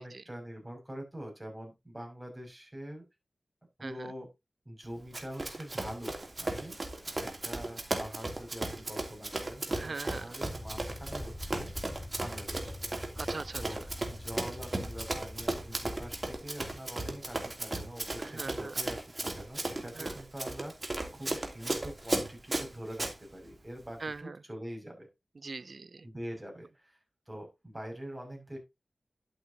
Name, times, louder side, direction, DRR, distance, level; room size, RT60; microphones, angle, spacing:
voice 1, 0.0-3.0 3.8-4.3 4.6-6.8 7.0-11.7 12.2-12.7 13.6-25.1 26.0-27.0 27.3-28.6, equal, 15° right, 6.1 m, -44 dB
Run, 5.1-23.1, right 2 dB, 35° right, 2.8 m, -36 dB
voice 2, 9.8-10.3 13.2-13.8 18.3-18.7 20.0-20.1 24.0-24.4 25.4-26.1, right 3 dB, 60° right, 0.4 m, -41 dB
sound 1, 10.5-16.4, left 1 dB, 5° left, 5.9 m, -45 dB
11.5 x 8.3 x 2.8 m
wide cardioid pair, 60°, 0 cm